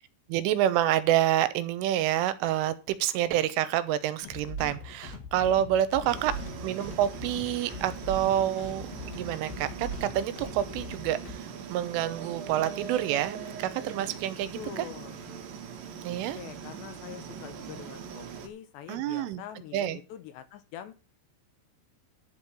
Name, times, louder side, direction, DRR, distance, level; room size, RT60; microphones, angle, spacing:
voice 1, 0.3-6.3 6.6-14.9 16.0-16.4 18.9-19.4 19.7-20.0, right 12 dB, 85° right, 13 dB, 3.4 m, -28 dB
sound 1, 4.2-11.3, left 1 dB, 55° left, 3.7 m, -41 dB
voice 2, 6.0-6.4 14.6-15.2 16.2-20.9, left 10 dB, 75° left, 11 dB, 3.0 m, -44 dB
sound 2, 6.1-18.5, right 7 dB, 60° right, 2.8 m, -41 dB
11.5 x 5.6 x 8.3 m, 0.32 s
omnidirectional pair, 5.6 m